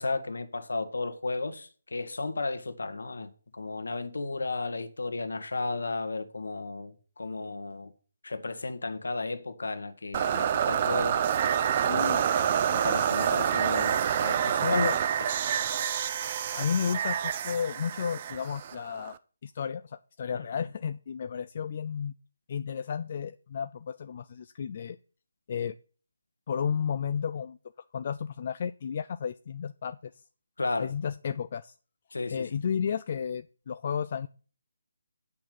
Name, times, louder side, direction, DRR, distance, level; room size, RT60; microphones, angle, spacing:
voice 1, 0.0-7.9 8.2-11.2 11.8-12.1 12.4-14.9 15.2-15.3 20.3-20.5 30.6-30.9 32.1-32.5, left 3 dB, 60° left, 1.4 m, -34 dB
sound 1, 10.1-19.2, right 9 dB, 30° right, 0.5 m, -27 dB
voice 2, 11.9-12.2 14.6-15.0 16.5-19.2 19.4-22.1 22.5-25.0 25.5-25.7 26.5-27.6 27.9-30.0 30.8-31.7 32.3-34.3, left 7 dB, 35° left, 0.3 m, -32 dB
8.6 x 5.9 x 6.9 m
figure-of-eight pair, 150°, 0 cm